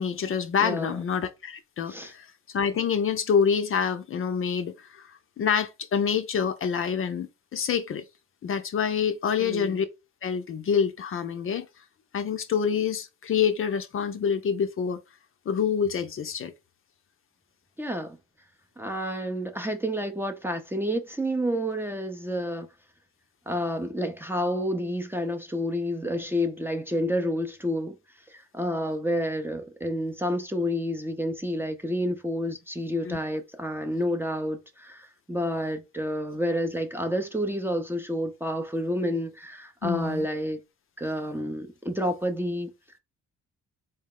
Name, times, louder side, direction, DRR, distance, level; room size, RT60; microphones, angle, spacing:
voice 1, 0.0-2.3 2.5-8.0 8.4-9.9 10.2-11.7 12.1-15.0 15.5-16.5 33.0-33.2 39.8-40.3, left 7 dB, 45° left, 0.5 m, -27 dB
voice 2, 0.6-1.0 1.9-2.1 9.4-9.8 17.8-18.2 18.8-22.7 23.5-28.0 28.3-40.6 41.0-42.7, equal, 5° right, 0.5 m, -29 dB
3.8 x 2.0 x 3.6 m
cardioid pair, 90°, 30 cm